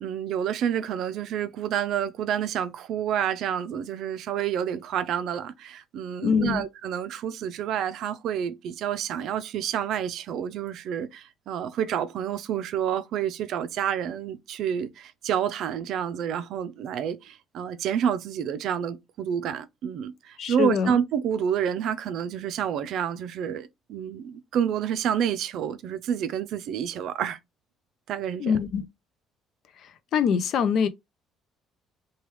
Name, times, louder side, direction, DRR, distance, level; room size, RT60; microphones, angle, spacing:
voice 1, 0.0-27.4 28.1-28.5, right 9 dB, 65° right, 0.4 m, -29 dB
voice 2, 6.2-6.6 20.4-20.9 28.4-28.9 30.1-30.9, left 7 dB, 60° left, 0.4 m, -24 dB
3.2 x 2.2 x 3.0 m
cardioid pair, 120°, 0 cm